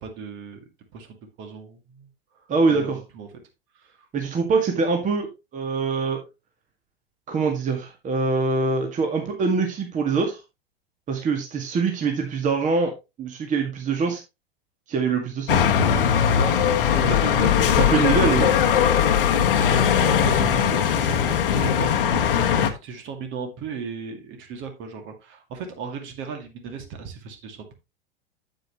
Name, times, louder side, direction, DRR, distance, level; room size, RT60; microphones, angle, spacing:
voice 1, 0.0-2.1 2.7-3.3 3.8-4.0 16.3-16.6 16.9-18.5 19.3-22.0 22.8-27.7, right 6 dB, 40° right, 5 dB, 2.2 m, -36 dB
voice 2, 2.5-3.0 4.1-6.2 7.3-10.4 11.1-12.9 13.2-14.2 14.9-15.7 17.8-18.5, right 4 dB, 25° right, 3 dB, 1.9 m, -24 dB
sound 1, 15.5-22.7, left 8 dB, 65° left, 1.3 m, -20 dB
8.9 x 8.1 x 3.0 m, 0.24 s
figure-of-eight pair, 90°, 30 cm